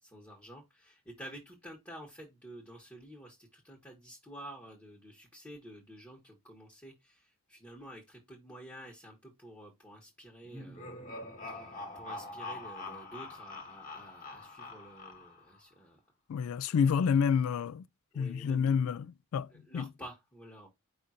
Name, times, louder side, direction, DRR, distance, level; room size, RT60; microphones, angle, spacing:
voice 1, 0.0-11.0 11.5-16.0 16.4-17.1 18.1-18.7 19.5-20.7, right 1 dB, 10° left, 1.1 m, -50 dB
sound 1, 10.4-15.6, left 2 dB, 35° left, 1.3 m, -44 dB
voice 2, 16.3-17.8 18.1-19.5 19.7-19.9, left 6 dB, 80° left, 0.3 m, -28 dB
5.1 x 2.5 x 4.2 m
head